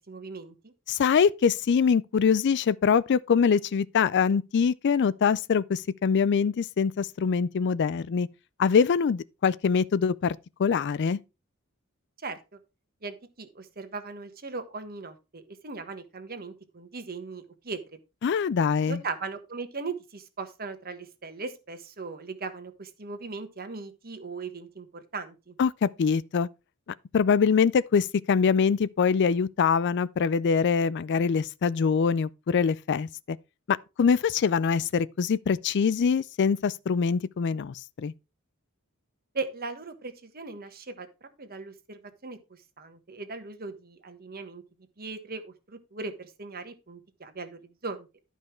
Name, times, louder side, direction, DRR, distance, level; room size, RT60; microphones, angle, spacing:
voice 1, 0.1-0.7 12.2-12.4 13.0-17.8 18.9-25.5 39.3-41.1 41.4-42.4 42.8-44.6 45.0-48.1, right 4 dB, 45° right, 1.3 m, -38 dB
voice 2, 0.9-8.3 8.6-11.2 18.2-19.0 25.6-26.5 27.1-33.4 33.7-38.1, left 6 dB, 55° left, 0.4 m, -24 dB
11.5 x 5.5 x 4.4 m
head